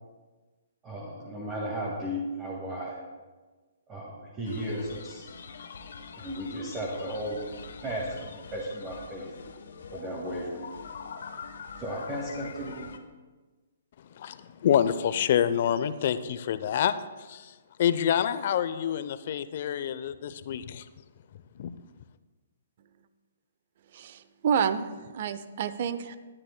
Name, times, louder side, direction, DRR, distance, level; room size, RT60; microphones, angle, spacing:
voice 1, 0.8-3.0 3.9-5.3 6.1-7.4 7.8-9.3 9.9-10.7 11.8-12.9, equal, 20° right, -3 dB, 1.9 m, -35 dB
sound 1, 4.4-13.0, left 5 dB, 70° left, 1.0 m, -44 dB
voice 2, 14.2-16.9 17.3-17.5 17.8-20.8 21.6-21.7, left 9 dB, 55° left, 13 dB, 0.6 m, -27 dB
voice 3, 23.9-26.2, right 7 dB, 50° right, 13 dB, 0.6 m, -29 dB
19.5 x 9.9 x 2.2 m, 1.3 s
hypercardioid pair, 135°, 0 cm